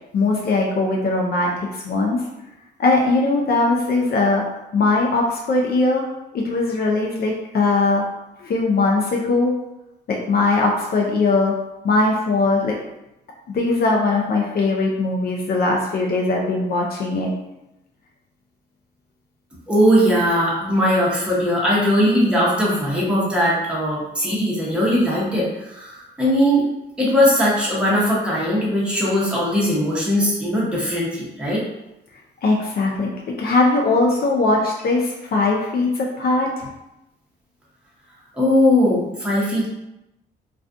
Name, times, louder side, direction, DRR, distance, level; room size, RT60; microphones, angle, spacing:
voice 1, 0.1-2.2 2.8-4.4 4.7-6.0 6.3-8.1 8.4-9.5 10.1-11.6 11.8-12.8 13.5-17.3 32.4-33.1 33.4-36.7, left 3 dB, 50° left, -1 dB, 0.5 m, -20 dB
voice 2, 19.7-26.6 27.0-31.6 38.4-39.7, equal, 5° right, -6 dB, 0.9 m, -19 dB
2.3 x 2.3 x 2.5 m, 0.91 s
cardioid pair, 90°, 20 cm